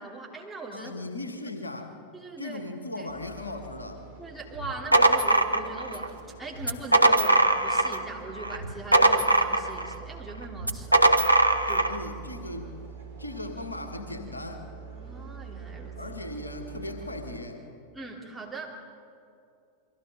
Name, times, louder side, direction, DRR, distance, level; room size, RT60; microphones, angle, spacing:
voice 1, 0.0-1.0 2.1-2.6 2.9-3.1 4.2-6.1 6.4-11.1 11.7-12.0 14.9-16.0 17.9-18.8, right 2 dB, 5° right, -3 dB, 3.3 m, -40 dB
voice 2, 0.7-2.0 2.4-4.1 11.9-14.7 16.0-17.7, left 2 dB, 80° left, 6 dB, 1.7 m, -38 dB
sound 1, 3.1-17.4, right 6 dB, 70° right, 3.5 m, -45 dB
sound 2, 4.6-6.1 6.6-8.1 8.4-9.9 10.6-12.0, right 2 dB, 85° right, 0.9 m, -21 dB
29.5 x 23.0 x 3.8 m, 2.5 s
figure-of-eight pair, 90°, 0 cm